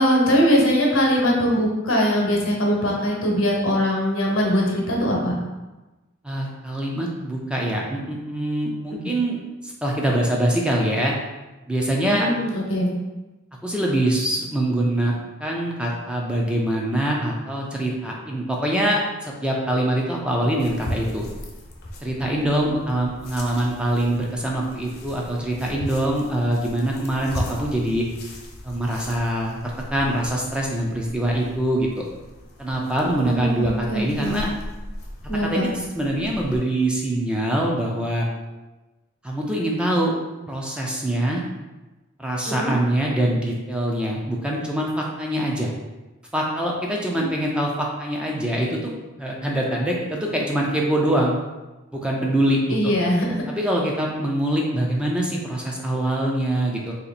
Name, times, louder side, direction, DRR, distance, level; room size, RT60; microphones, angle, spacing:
voice 1, 0.0-5.4 9.0-9.1 12.1-12.9 22.4-22.7 33.1-34.4 35.3-35.7 42.5-42.7 47.2-47.3 52.7-53.6, equal, 75° left, -1 dB, 1.0 m, -22 dB
voice 2, 6.2-11.2 11.7-12.3 13.6-21.2 22.0-28.1 28.6-29.6 29.9-31.9 32.6-34.5 35.2-38.3 39.2-40.1 40.5-41.4 42.2-45.7 46.3-48.9 49.2-51.4 51.9-52.8 53.5-56.9, right 1 dB, 5° right, -2 dB, 0.4 m, -24 dB
sound 1, 20.6-36.6, left 1 dB, 50° left, 0.7 m, -38 dB
3.0 x 2.9 x 4.1 m, 1.1 s
head